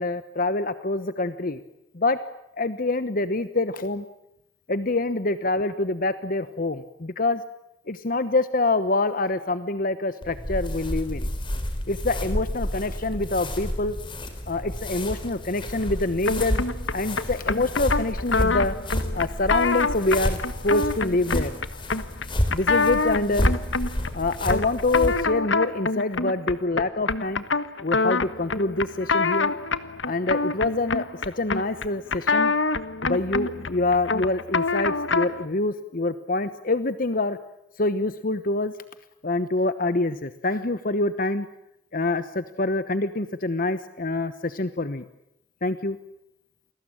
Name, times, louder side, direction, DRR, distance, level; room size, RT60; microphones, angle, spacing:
voice 1, 0.0-1.6 1.9-2.2 2.6-4.0 4.7-7.4 7.9-11.3 11.9-14.0 14.5-16.6 16.9-18.7 19.1-21.5 22.5-23.5 24.1-27.4 27.8-29.5 30.0-32.5 33.0-37.4 37.8-38.7 39.2-41.5 41.9-45.0 45.6-46.0, left 2 dB, 50° left, 12 dB, 1.1 m, -26 dB
sound 1, 10.2-25.2, left 1 dB, 25° left, 3.9 m, -30 dB
sound 2, 16.3-35.5, left 4 dB, 85° left, 1.4 m, -26 dB
29.0 x 21.0 x 8.9 m, 0.83 s
head